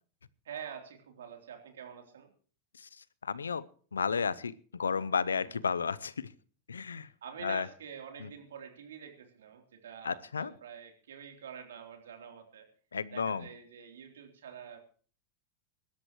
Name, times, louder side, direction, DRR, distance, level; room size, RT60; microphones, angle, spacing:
voice 1, 0.4-2.3 5.3-5.6 6.9-12.7 13.1-14.8, right 7 dB, 80° right, 4 dB, 3.4 m, -47 dB
voice 2, 2.7-3.6 3.9-6.3 6.7-7.1 7.4-7.7 8.2-8.3 10.0-10.5 12.9-13.5, left 6 dB, 90° left, 19 dB, 0.6 m, -33 dB
23.0 x 12.5 x 3.1 m, 0.42 s
hypercardioid pair, 95°, 0 cm